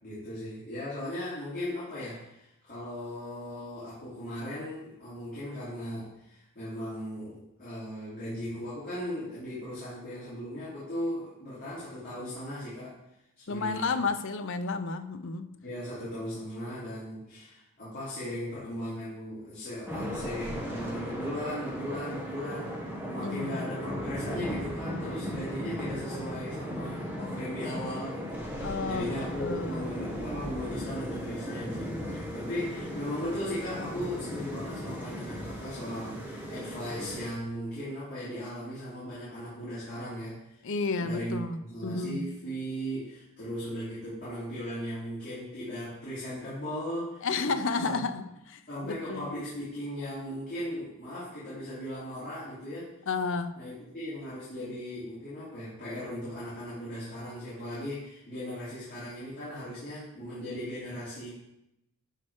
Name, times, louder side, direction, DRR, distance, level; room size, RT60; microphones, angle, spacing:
voice 1, 0.0-13.0 13.5-14.0 15.6-22.8 23.1-28.5 28.8-40.4 41.0-41.4 41.7-47.2 47.8-48.0 48.7-52.9 53.6-61.3, equal, 40° left, -12 dB, 3.5 m, -37 dB
voice 2, 13.5-15.6 23.2-23.6 28.6-29.9 40.6-42.4 47.2-49.3 53.1-53.6, left 4 dB, 60° left, 9 dB, 0.7 m, -32 dB
sound 1, 19.9-37.3, equal, 10° right, 1.4 m, -37 dB
11.5 x 4.4 x 4.9 m, 0.86 s
head